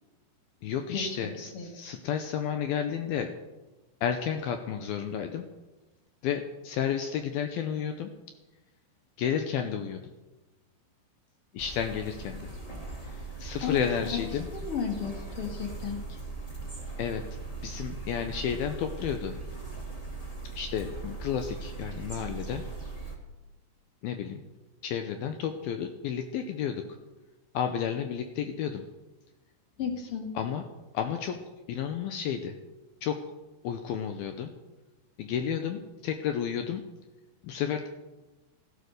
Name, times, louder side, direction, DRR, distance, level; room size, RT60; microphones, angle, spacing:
voice 1, 0.6-3.3 4.0-5.5 6.2-8.1 9.2-10.0 11.5-12.5 13.0-14.5 17.0-17.2 17.6-19.4 20.5-22.6 24.0-24.4 24.8-26.9 27.5-28.8 30.3-30.7 30.9-31.4 31.7-32.6 33.0-33.2 33.6-34.5 35.2-36.8 37.4-37.9, left 8 dB, 75° left, 6 dB, 2.4 m, -31 dB
sound 1, 11.6-23.2, right 3 dB, 30° left, 0.6 m, -39 dB
voice 2, 13.6-14.2 14.5-16.0 29.8-30.3, left 7 dB, 50° left, 3 dB, 1.8 m, -33 dB
16.0 x 12.0 x 6.6 m, 1.1 s
omnidirectional pair, 5.0 m